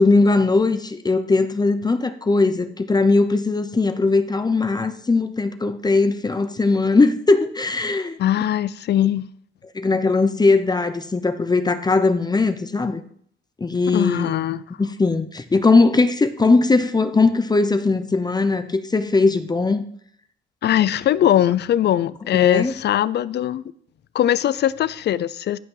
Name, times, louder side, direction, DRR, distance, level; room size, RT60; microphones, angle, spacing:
voice 1, 0.0-8.2 9.7-13.0 13.6-14.4 14.8-19.8 22.3-22.7, left 3 dB, 20° left, 0.7 m, -19 dB
voice 2, 8.2-9.3 13.9-14.6 20.6-23.6 24.1-25.6, left 11 dB, 60° left, 0.5 m, -20 dB
15.0 x 5.6 x 3.8 m
cardioid pair, 90°, 20 cm